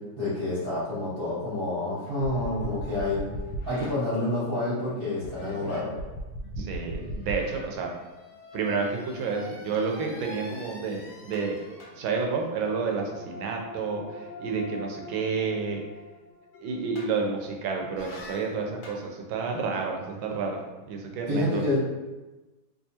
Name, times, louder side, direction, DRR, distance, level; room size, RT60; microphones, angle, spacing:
voice 1, 0.2-3.2 3.6-5.9 21.3-21.8, left 1 dB, 30° right, -11 dB, 1.5 m, -28 dB
sound 1, 2.1-4.8 5.2-17.5 18.0-19.0, equal, 70° left, 1.2 m, -41 dB
voice 2, 6.6-7.9 8.5-11.6 12.0-15.8 16.6-21.6, right 4 dB, 90° right, 1 dB, 1.4 m, -30 dB
3.5 x 2.9 x 2.8 m, 1.1 s
omnidirectional pair, 2.1 m